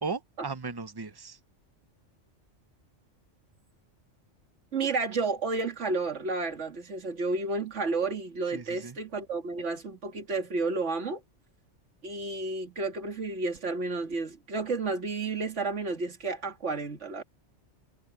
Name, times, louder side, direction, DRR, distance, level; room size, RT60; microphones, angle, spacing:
voice 1, 0.0-1.4 8.5-9.0, right 4 dB, 20° right, 0.8 m, -36 dB
voice 2, 4.7-11.2 12.0-17.2, right 3 dB, 75° right, 2.3 m, -31 dB
omnidirectional pair, 1.3 m